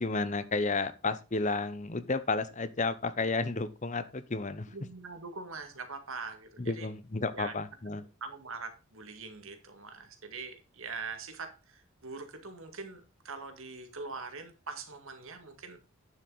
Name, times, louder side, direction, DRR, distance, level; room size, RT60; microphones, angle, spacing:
voice 1, 0.0-4.7 6.6-8.0, left 3 dB, 35° left, 13 dB, 0.8 m, -32 dB
voice 2, 4.7-6.9 7.3-7.5 7.9-15.8, right 4 dB, 65° right, 7 dB, 2.0 m, -43 dB
9.9 x 7.3 x 4.0 m, 0.31 s
head